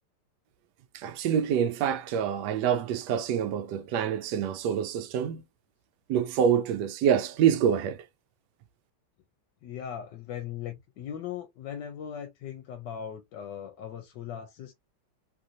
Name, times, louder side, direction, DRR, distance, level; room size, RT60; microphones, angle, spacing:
voice 1, 0.9-5.4 6.1-8.0, right 8 dB, 75° right, 1.2 m, -26 dB
voice 2, 9.6-14.7, left 9 dB, 85° left, 1.3 m, -39 dB
3.2 x 2.5 x 2.7 m
omnidirectional pair, 1.9 m